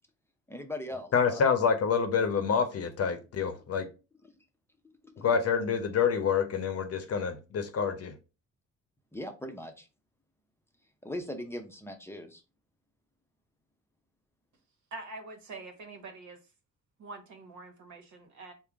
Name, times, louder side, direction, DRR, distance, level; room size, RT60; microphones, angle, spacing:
voice 1, 0.5-1.4 5.2-5.3 9.1-9.9 11.0-12.4, left 1 dB, 10° left, 0.6 m, -39 dB
voice 2, 1.1-3.9 5.2-8.1, left 6 dB, 50° left, 0.7 m, -27 dB
voice 3, 14.9-16.4 17.0-18.5, right 3 dB, 70° right, 1.0 m, -45 dB
3.6 x 2.2 x 3.4 m
cardioid pair, 90°, 30 cm